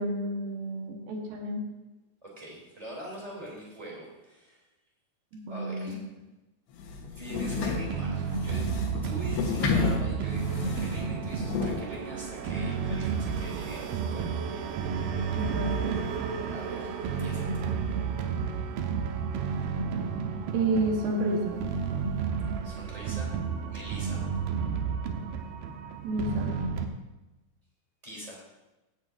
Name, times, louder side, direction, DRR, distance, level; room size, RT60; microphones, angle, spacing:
voice 1, 0.0-1.6 5.3-6.0 15.3-15.9 20.5-21.7 26.0-26.6, right 2 dB, 65° right, 1 dB, 2.7 m, -30 dB
voice 2, 2.2-4.6 5.5-6.0 7.2-8.7 9.0-14.3 16.5-17.7 22.6-23.3 23.7-24.3 28.0-28.4, right 1 dB, 10° right, -4 dB, 2.4 m, -43 dB
sound 1, 6.8-11.8, left 5 dB, 85° left, 3.5 m, -31 dB
sound 2, 7.3-26.9, right 6 dB, 80° right, 2.1 m, -32 dB
16.5 x 8.9 x 2.7 m, 1.1 s
omnidirectional pair, 5.1 m